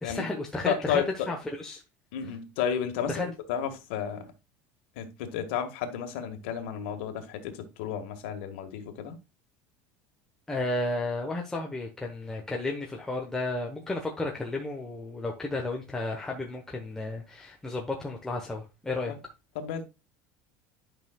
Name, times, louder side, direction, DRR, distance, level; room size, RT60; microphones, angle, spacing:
voice 1, 0.0-1.8 3.1-3.3 10.5-19.1, left 2 dB, 10° left, 1.0 m, -33 dB
voice 2, 0.7-1.3 2.1-4.3 5.0-9.2 19.1-19.2 19.6-19.8, left 8 dB, 85° left, 1.7 m, -32 dB
10.5 x 5.7 x 2.3 m
cardioid pair, 155°, 6 cm